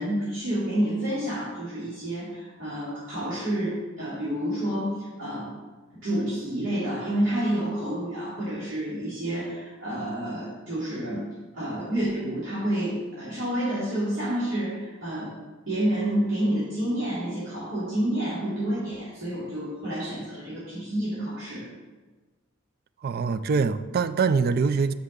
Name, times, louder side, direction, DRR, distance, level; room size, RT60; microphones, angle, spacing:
voice 1, 0.0-5.5 6.0-11.2 11.5-15.3 15.7-21.6, right 1 dB, 70° right, -10 dB, 2.8 m, -29 dB
voice 2, 23.0-24.9, right 5 dB, 50° right, 13 dB, 0.4 m, -24 dB
5.8 x 5.6 x 6.6 m, 1.3 s
head